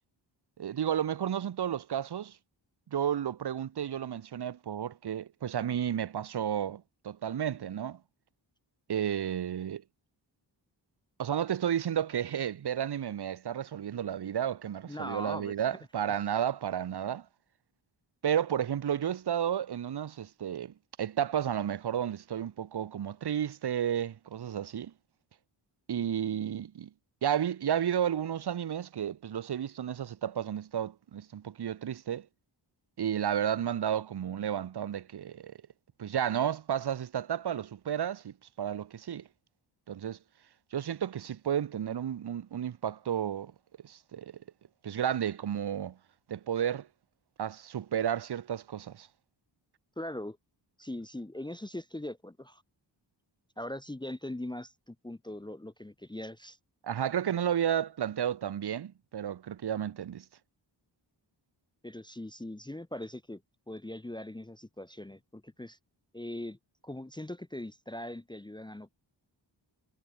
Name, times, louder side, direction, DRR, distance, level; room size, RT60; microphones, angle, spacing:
voice 1, 0.6-2.4 2.9-8.0 8.9-9.8 11.2-17.3 18.2-24.9 25.9-26.9 27.2-32.3 33.0-35.5 36.0-39.3 39.9-40.2 40.7-43.5 43.8-44.4 44.8-46.0 46.3-46.9 47.4-49.1 56.8-60.2, right 9 dB, 60° right, 0.9 m, -32 dB
voice 2, 14.9-15.8 50.0-50.4 50.8-52.6 53.6-56.6 61.8-63.4 63.7-65.8 66.1-66.6 66.8-68.9, left 1 dB, 10° left, 0.9 m, -40 dB
wide cardioid pair, 125°, 46 cm